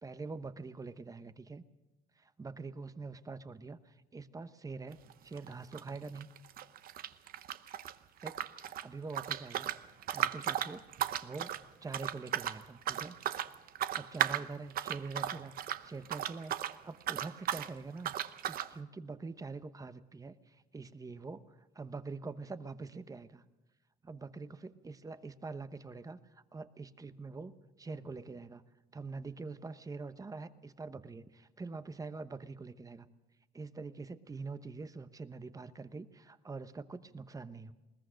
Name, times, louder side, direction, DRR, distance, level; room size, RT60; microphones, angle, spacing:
voice 1, 0.0-1.6 2.2-6.3 8.2-8.4 8.6-9.7 10.1-10.8 11.2-11.5 11.8-13.2 13.9-15.5 15.8-16.6 16.8-18.1 18.4-21.4 21.7-23.4 24.0-28.6 28.9-33.1 33.5-37.7, right 4 dB, 20° right, 12 dB, 1.0 m, -44 dB
sound 1, 4.9-5.1 5.4-7.9 8.2-16.8 17.0-17.7 18.0-18.7, right 11 dB, 60° right, 0.8 m, -36 dB
21.0 x 19.5 x 6.4 m, 1.0 s
cardioid pair, 110°, 17 cm